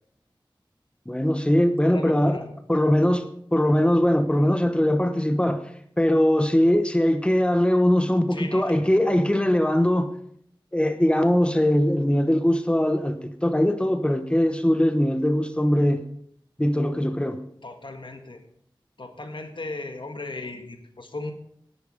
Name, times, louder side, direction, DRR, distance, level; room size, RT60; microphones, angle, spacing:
voice 1, 1.1-2.4 2.7-5.6 6.0-10.1 10.7-16.0 16.6-17.4, left 1 dB, 10° left, 1.0 m, -21 dB
voice 2, 1.8-2.5 8.3-8.9 17.6-18.4 19.0-21.3, left 2 dB, 65° left, 1.7 m, -37 dB
10.5 x 10.5 x 5.1 m
wide cardioid pair, 40°, 9 cm